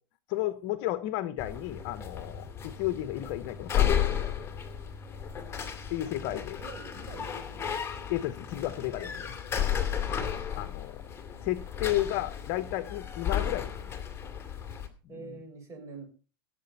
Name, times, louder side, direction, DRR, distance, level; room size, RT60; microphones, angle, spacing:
voice 1, 0.3-4.3 5.9-6.6 8.1-9.4 10.5-11.0 11.4-13.9 15.1-15.4, left 15 dB, 50° left, 14 dB, 1.0 m, -33 dB
sound 1, 1.4-14.9, left 9 dB, 20° left, 2.5 m, -33 dB
voice 2, 6.3-7.7 9.9-10.1 15.1-16.1, right 4 dB, 25° right, 3 dB, 6.7 m, -46 dB
17.0 x 7.7 x 5.6 m, 0.35 s
supercardioid pair, 130°, 12 cm